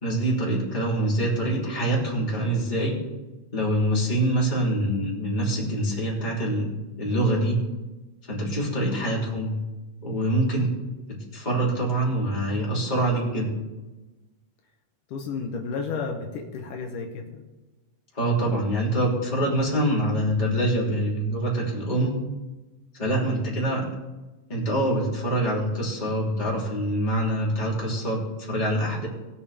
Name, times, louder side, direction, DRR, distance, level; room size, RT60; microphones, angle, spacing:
voice 1, 0.0-3.0 3.5-6.6 7.0-7.6 8.3-9.6 10.0-10.7 11.1-13.5 18.1-22.2 22.9-23.8 24.5-29.1, right 1 dB, 15° left, -5 dB, 3.0 m, -25 dB
voice 2, 8.9-9.4 15.1-17.5, left 5 dB, 75° left, 2 dB, 2.7 m, -33 dB
20.5 x 7.1 x 3.5 m, 1.1 s
omnidirectional pair, 3.7 m